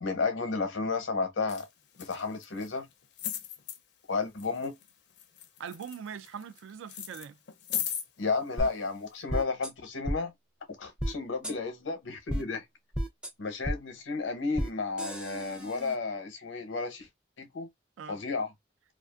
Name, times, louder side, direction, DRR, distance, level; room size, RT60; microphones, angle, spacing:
voice 1, 0.0-1.7 2.0-2.9 4.1-4.7 8.2-10.3 10.8-12.6 13.4-17.1 17.4-17.7 18.1-18.5, left 4 dB, 90° left, 0.8 m, -32 dB
sound 1, 1.5-1.6 2.0-2.7 3.2-3.8 4.4-4.9 5.2-6.6 6.9-8.1 8.8-8.9, left 10 dB, 60° left, 0.5 m, -36 dB
voice 2, 5.6-7.4 18.0-18.2, right 7 dB, 90° right, 0.3 m, -41 dB
sound 2, 8.6-8.7 9.3-9.7 10.0-10.2 11.0-11.1 11.4-11.5 12.3-12.4 12.9-13.3 13.6-13.8 14.5-14.7 15.0-15.9, equal, 5° right, 0.4 m, -32 dB
2.4 x 2.4 x 2.3 m
head